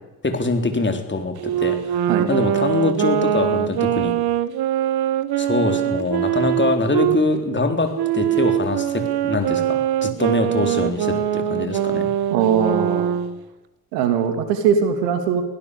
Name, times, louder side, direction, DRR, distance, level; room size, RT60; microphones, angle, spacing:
voice 1, 0.2-2.0 2.3-4.1 5.4-12.1, left 3 dB, 25° left, 6 dB, 3.9 m, -23 dB
Wind instrument woodwind instrument, 1.4-7.2 7.9-13.4, right 11 dB, 50° right, 1.3 m, -22 dB
voice 2, 12.3-13.2 13.9-15.4, right 7 dB, 75° right, 8 dB, 2.6 m, -20 dB
23.0 x 16.5 x 6.8 m, 1.0 s
figure-of-eight pair, 45°, 48 cm